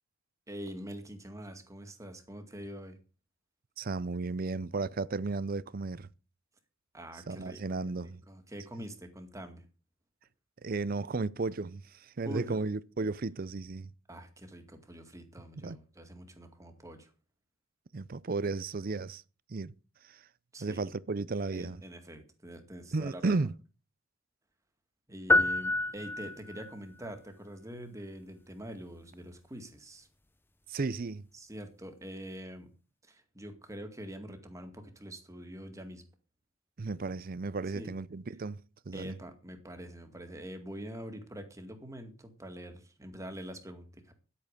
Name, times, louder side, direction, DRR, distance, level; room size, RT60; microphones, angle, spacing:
voice 1, 0.5-3.0 6.9-7.6 8.0-9.6 12.2-12.6 14.1-17.1 20.5-20.9 21.5-23.3 25.1-30.1 31.3-32.7 33.1-36.0 37.7-37.9 38.9-44.1, equal, 15° right, 2.0 m, -45 dB
voice 2, 3.8-6.1 7.3-8.2 10.6-11.8 12.2-13.9 15.6-15.8 17.9-19.2 19.5-19.7 20.1-20.2 20.6-21.8 22.9-23.5 30.7-31.2 36.8-38.6 38.9-39.2, right 3 dB, 45° right, 0.5 m, -34 dB
sound 1, 25.3-26.8, left 2 dB, 10° left, 0.7 m, -27 dB
11.5 x 8.6 x 6.6 m
head